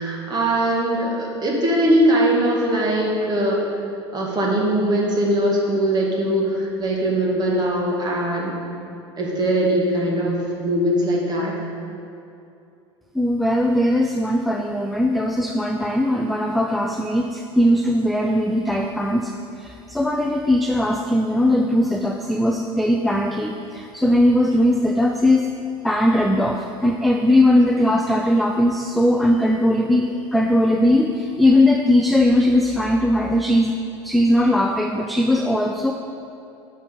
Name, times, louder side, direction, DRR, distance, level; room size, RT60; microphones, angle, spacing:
voice 1, 0.0-3.6 4.1-8.6 9.2-11.6, right 1 dB, 30° right, -2 dB, 2.0 m, -21 dB
voice 2, 13.1-25.5 25.8-33.8 34.0-35.9, left 1 dB, ahead, 3 dB, 0.4 m, -19 dB
6.4 x 5.2 x 6.9 m, 2.7 s
hypercardioid pair, 80°, 15 cm